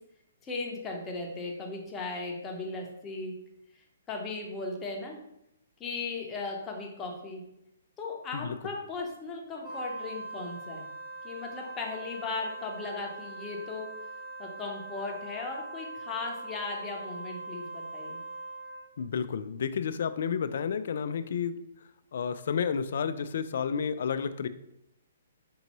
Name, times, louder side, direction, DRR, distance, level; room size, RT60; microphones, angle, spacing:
voice 1, 0.4-3.3 3.7-5.2 5.8-7.4 8.0-10.9 11.2-13.9 14.4-18.2, left 3 dB, 15° left, -1 dB, 0.8 m, -37 dB
Wind instrument woodwind instrument, 9.6-18.9, right 2 dB, 5° right, 1.1 m, -42 dB
voice 2, 19.0-21.5 22.1-24.5, left 6 dB, 65° left, 12 dB, 0.3 m, -31 dB
5.3 x 2.6 x 3.0 m, 0.80 s
hypercardioid pair, 145°, 0 cm